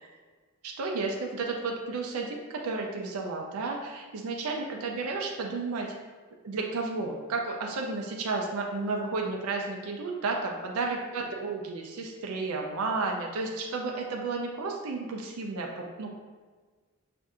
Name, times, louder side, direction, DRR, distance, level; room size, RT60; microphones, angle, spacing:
voice 1, 0.6-5.9 6.4-16.1, right 3 dB, 75° right, 1 dB, 0.4 m, -32 dB
5.3 x 2.5 x 2.4 m, 1.4 s
head